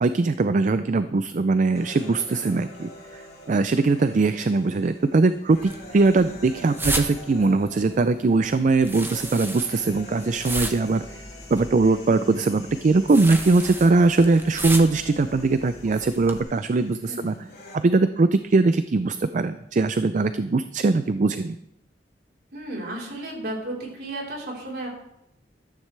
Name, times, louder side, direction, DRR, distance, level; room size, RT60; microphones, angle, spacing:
voice 1, 0.0-3.2 3.5-11.0 11.5-17.3 17.7-21.6, right 3 dB, 45° right, 12 dB, 0.4 m, -21 dB
sound 1, 1.7-17.8, left 1 dB, 65° left, 3.4 m, -45 dB
sound 2, 5.5-16.4, right 2 dB, 15° right, 1.0 m, -35 dB
voice 2, 17.1-17.4 22.5-24.9, right 1 dB, 65° right, -3 dB, 4.0 m, -33 dB
14.0 x 13.0 x 3.3 m, 0.81 s
head